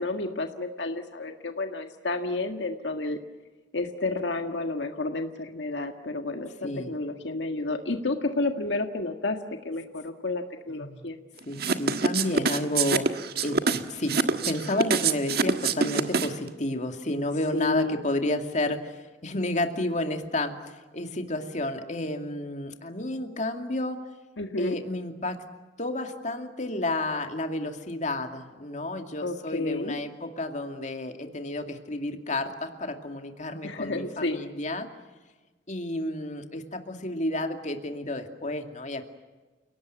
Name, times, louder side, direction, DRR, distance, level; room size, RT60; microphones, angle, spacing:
voice 1, 0.0-3.2 3.7-9.4 9.6-11.2 17.5-18.0 24.4-24.8 29.2-30.0 33.6-34.4, left 2 dB, 75° left, 5 dB, 1.7 m, -31 dB
voice 2, 10.7-11.0 11.5-24.0 24.6-25.5 25.8-34.9 35.7-39.1, left 1 dB, 40° left, 6 dB, 2.4 m, -31 dB
sound 1, 11.6-16.5, right 4 dB, 55° right, 1.6 m, -25 dB
30.0 x 18.0 x 9.3 m, 1.3 s
head